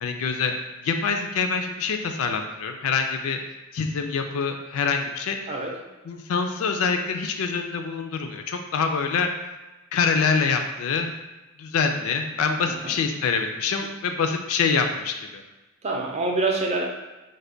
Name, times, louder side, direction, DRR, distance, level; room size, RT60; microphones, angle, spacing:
voice 1, 0.0-0.5 0.8-3.4 3.7-5.4 6.1-9.3 9.9-11.1 11.6-15.4, left 5 dB, 70° left, 5 dB, 0.4 m, -25 dB
voice 2, 5.5-5.8 12.7-13.0 15.8-16.9, right 3 dB, 30° right, 0 dB, 0.4 m, -26 dB
3.3 x 2.1 x 3.8 m, 1.1 s
head